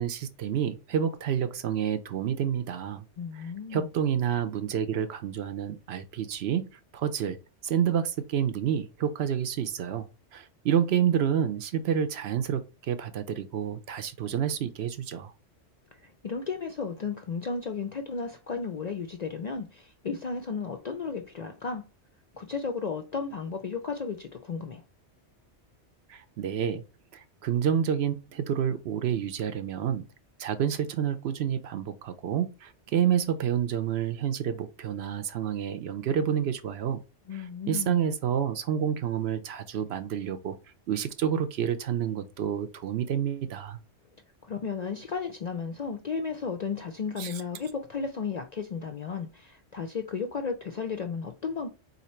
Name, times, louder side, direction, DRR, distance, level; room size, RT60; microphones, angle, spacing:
voice 1, 0.0-3.0 3.7-6.7 6.9-7.4 7.6-10.1 10.3-15.3 26.1-26.8 27.4-30.0 30.4-37.0 37.7-40.5 40.9-43.8 47.2-47.3, right 9 dB, 65° right, 0.8 m, -29 dB
voice 2, 3.2-3.9 15.9-21.9 22.3-24.8 37.3-38.0 44.4-51.7, left 5 dB, 55° left, 0.4 m, -34 dB
3.9 x 2.8 x 4.2 m
omnidirectional pair, 1.2 m